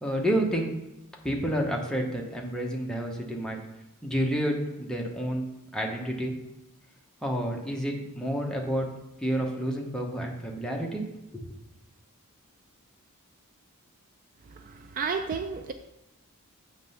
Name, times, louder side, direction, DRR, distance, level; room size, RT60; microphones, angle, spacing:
voice 1, 0.0-0.7 1.2-3.6 4.0-5.5 5.7-6.3 7.2-8.9 9.2-11.0 11.3-11.6, equal, 5° left, -1 dB, 0.8 m, -29 dB
voice 2, 14.6-15.7, right 5 dB, 40° right, 7 dB, 0.3 m, -32 dB
7.3 x 3.2 x 5.5 m, 0.93 s
head